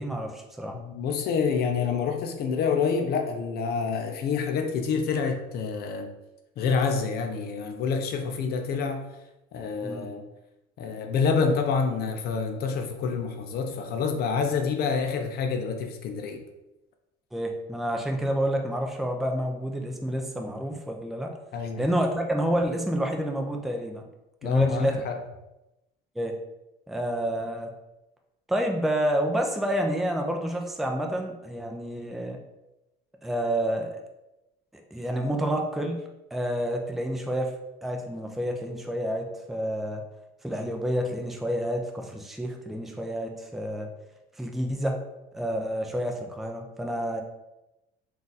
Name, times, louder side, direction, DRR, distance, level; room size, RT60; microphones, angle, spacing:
voice 1, 0.0-0.7 9.8-10.1 17.3-21.3 21.8-24.0 24.4-25.0 26.2-26.4 26.9-27.7 28.5-32.4 33.2-33.9 34.9-36.0 36.3-37.5 37.8-40.0 40.4-43.9 44.4-45.0 45.3-47.2, right 1 dB, ahead, 2 dB, 0.5 m, -29 dB
voice 2, 0.7-6.1 6.6-9.1 9.5-10.2 10.8-16.4 21.5-21.8 24.4-25.2, left 5 dB, 55° left, 5 dB, 0.5 m, -27 dB
3.8 x 2.5 x 3.9 m, 0.95 s
supercardioid pair, 100°, 19 cm